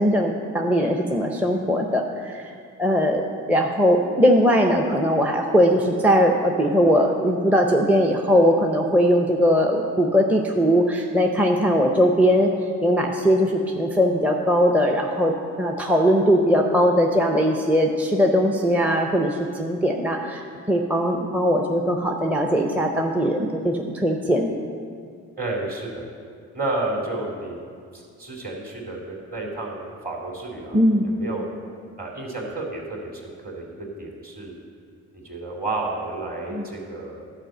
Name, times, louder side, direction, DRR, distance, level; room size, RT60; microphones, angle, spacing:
voice 1, 0.0-2.5 2.8-12.5 12.8-20.4 20.7-24.5 30.7-31.1 36.5-36.6, equal, 5° right, 1 dB, 0.7 m, -20 dB
voice 2, 25.4-26.1 26.5-27.6 27.9-30.8 31.0-31.5 32.0-34.6 35.1-37.2, right 2 dB, 30° right, -2 dB, 2.6 m, -31 dB
10.5 x 5.0 x 7.6 m, 2.3 s
cardioid pair, 90°, 30 cm